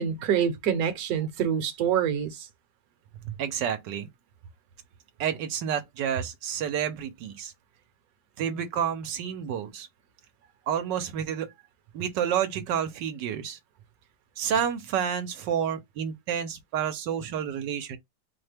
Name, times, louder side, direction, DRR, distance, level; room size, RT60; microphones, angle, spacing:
voice 1, 0.0-2.4, right 8 dB, 65° right, 1.2 m, -26 dB
voice 2, 3.2-4.1 5.2-7.5 8.4-9.9 10.7-11.5 11.9-13.6 14.4-18.0, right 8 dB, 80° right, 1.3 m, -29 dB
4.3 x 2.1 x 3.3 m
omnidirectional pair, 1.9 m